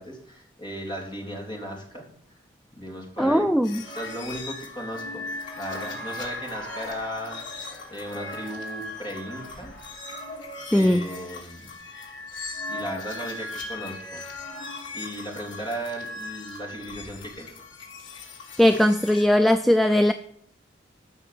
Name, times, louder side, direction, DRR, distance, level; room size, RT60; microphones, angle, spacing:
voice 1, 0.0-2.4 2.7-3.5 3.9-9.7 10.3-11.7 12.3-14.2 14.9-17.5, equal, 25° left, -1 dB, 3.5 m, -36 dB
voice 2, 3.2-3.8 10.7-11.0 18.6-20.1, left 1 dB, ahead, 7 dB, 0.4 m, -19 dB
sound 1, 3.6-19.3, left 2 dB, 80° left, 3.6 m, -38 dB
Cheering / Applause, 5.4-10.5, left 1 dB, 60° left, 2.8 m, -44 dB
14.5 x 6.2 x 7.7 m, 0.65 s
head